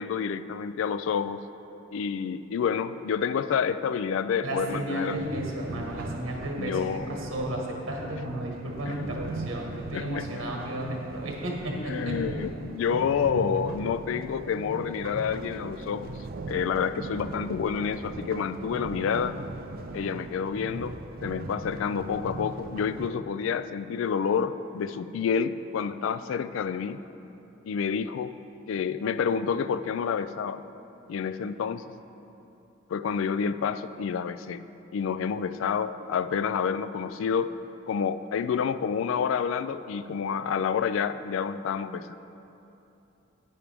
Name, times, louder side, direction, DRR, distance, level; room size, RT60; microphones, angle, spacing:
voice 1, 0.0-1.5 1.9-5.2 6.6-7.1 9.9-10.3 11.9-16.1 16.5-19.4 19.9-21.0 21.2-27.0 27.7-28.3 28.7-30.6 31.1-31.8 32.9-34.6 34.9-37.5 37.9-42.1, left 6 dB, 70° left, 13 dB, 0.3 m, -28 dB
voice 2, 4.4-12.4, right 1 dB, 75° right, -1 dB, 1.5 m, -33 dB
sound 1, 5.1-23.1, right 2 dB, 45° right, 0.4 m, -38 dB
11.0 x 8.5 x 3.5 m, 2.9 s
head